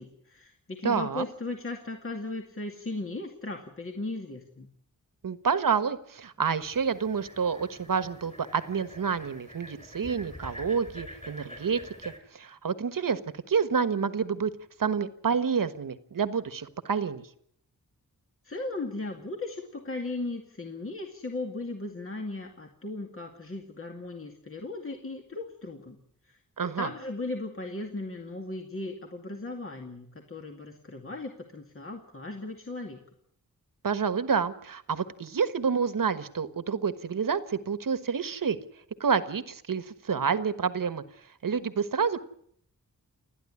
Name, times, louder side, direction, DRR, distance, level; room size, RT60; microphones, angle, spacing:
voice 1, 0.0-4.7 18.4-26.0 26.2-33.0, left 2 dB, 40° left, 2 dB, 2.3 m, -37 dB
voice 2, 0.8-1.2 5.2-13.2 13.5-14.5 14.8-17.3 26.6-26.9 33.8-38.6 39.0-41.0 41.4-42.2, right 6 dB, 70° right, 13 dB, 1.4 m, -28 dB
sound 1, 6.6-12.2, equal, 20° left, 5.8 m, -47 dB
29.5 x 10.5 x 9.8 m, 0.68 s
wide cardioid pair, 115°, 34 cm